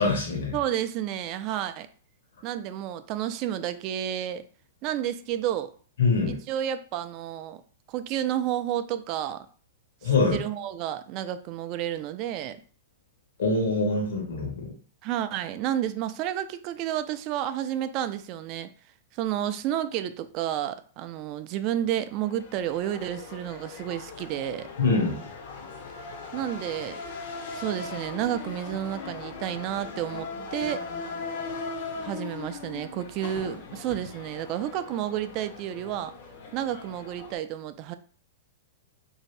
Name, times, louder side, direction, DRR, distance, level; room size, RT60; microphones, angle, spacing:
voice 1, 0.0-0.5 6.0-6.4 10.0-10.4 13.4-14.7 24.8-25.2, left 3 dB, 80° left, 0 dB, 1.1 m, -24 dB
voice 2, 0.5-1.9 2.4-4.4 4.8-5.7 6.3-7.6 7.9-9.5 10.0-12.6 15.0-18.7 19.1-24.7 26.3-27.0 27.5-30.8 32.0-36.1 36.5-37.9, right 11 dB, 40° right, 11 dB, 0.3 m, -31 dB
sound 1, 22.0-37.3, left 4 dB, 55° left, 0.6 m, -39 dB
2.6 x 2.5 x 3.2 m, 0.42 s
hypercardioid pair, 135°, 0 cm